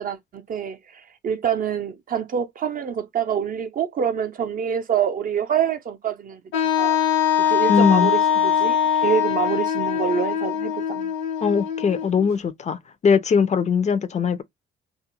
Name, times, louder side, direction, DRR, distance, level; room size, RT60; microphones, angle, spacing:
voice 1, 0.0-6.4 6.8-7.0 7.4-11.1, right 8 dB, 45° right, 0.5 m, -26 dB
Wind instrument woodwind instrument, 6.5-12.3, left 9 dB, 85° left, 1.0 m, -22 dB
voice 2, 7.7-8.1 11.4-12.8 13.0-14.4, left 6 dB, 35° left, 0.4 m, -20 dB
2.3 x 2.1 x 2.9 m
cardioid pair, 90°, 20 cm